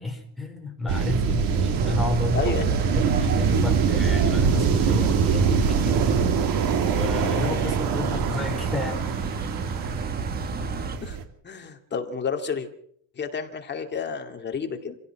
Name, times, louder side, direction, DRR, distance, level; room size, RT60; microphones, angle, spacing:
voice 1, 0.0-2.6 2.9-6.3 6.8-9.0, left 2 dB, ahead, 0 dB, 4.6 m, -31 dB
sound 1, 0.9-11.2, right 6 dB, 65° right, 2.6 m, -24 dB
sound 2, 1.7-11.0, right 3 dB, 25° right, 1.5 m, -32 dB
voice 2, 2.3-2.7 11.0-11.2 11.4-12.7 13.2-15.0, left 6 dB, 30° left, 5 dB, 2.4 m, -30 dB
27.0 x 16.5 x 6.0 m, 0.65 s
cardioid pair, 170°, 36 cm